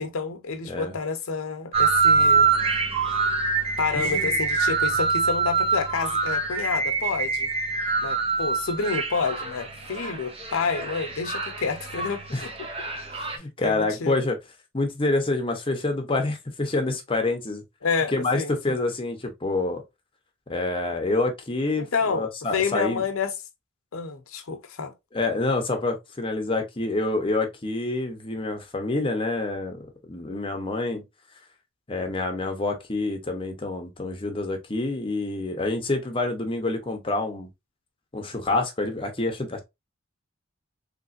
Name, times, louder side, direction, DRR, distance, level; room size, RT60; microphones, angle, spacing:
voice 1, 0.0-2.5 3.8-7.5 8.0-12.7 13.1-14.2 17.8-18.8 21.8-23.3 23.9-24.9, left 5 dB, 80° left, 0.7 m, -29 dB
sound 1, 1.7-13.4, right 4 dB, 30° right, 0.7 m, -25 dB
voice 2, 3.9-4.4 12.3-12.4 13.3-14.4 14.7-17.6 18.1-19.8 20.5-23.0 25.1-29.8 30.1-31.0 31.9-37.5 38.1-39.6, left 2 dB, 25° left, 0.8 m, -27 dB
3.2 x 3.1 x 2.5 m
head